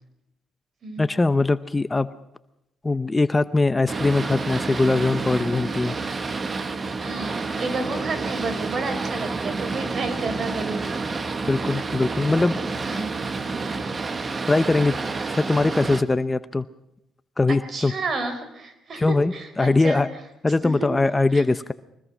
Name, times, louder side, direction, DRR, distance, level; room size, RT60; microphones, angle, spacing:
voice 1, 1.0-2.1 2.8-5.9 11.5-12.6 14.5-15.0 15.2-16.6 17.4-17.9 18.9-20.1 20.4-21.7, left 3 dB, 20° left, 13 dB, 0.7 m, -21 dB
Boat Water vehicle, 3.9-16.0, right 4 dB, 35° right, 1.4 m, -29 dB
voice 2, 7.0-10.9 12.9-13.3 17.5-20.0 20.6-20.9 21.3-21.4, right 3 dB, 50° right, 9 dB, 4.4 m, -31 dB
23.5 x 20.0 x 6.2 m, 0.85 s
cardioid pair, 90°, 0 cm